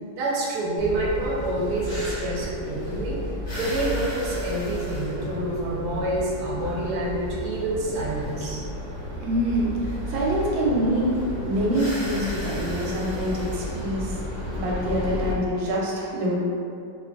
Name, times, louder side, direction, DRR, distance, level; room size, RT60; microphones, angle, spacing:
voice 1, 0.2-3.2 3.5-8.6, right 1 dB, 65° right, -5 dB, 1.0 m, -27 dB
sound 1, 0.8-15.3, left 1 dB, 55° left, 0.5 m, -33 dB
voice 2, 9.1-14.2 14.5-16.4, equal, 90° right, -4 dB, 1.4 m, -25 dB
3.0 x 2.5 x 2.4 m, 2.4 s
omnidirectional pair, 2.1 m